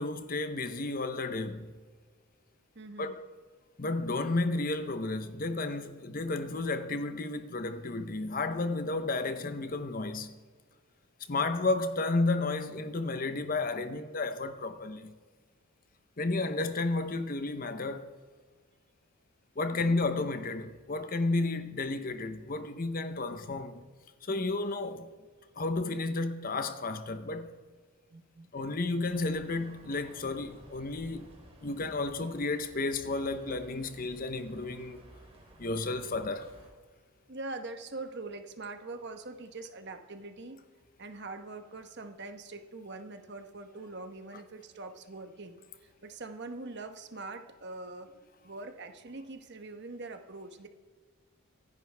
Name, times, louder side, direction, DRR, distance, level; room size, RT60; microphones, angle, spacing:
voice 1, 0.0-1.8 3.0-3.3 3.8-10.4 11.3-15.1 16.2-18.1 19.6-23.8 24.2-25.1 25.6-27.6 28.5-31.3 31.6-35.0 35.6-36.5, left 2 dB, 40° left, 0.8 m, -32 dB
voice 2, 2.7-3.2 19.7-19.9 28.1-28.5 37.3-40.6 41.0-48.1 48.4-50.7, right 3 dB, 50° right, 1.1 m, -43 dB
sound 1, 29.0-36.7, right 1 dB, 25° right, 2.7 m, -55 dB
25.5 x 11.0 x 3.4 m
head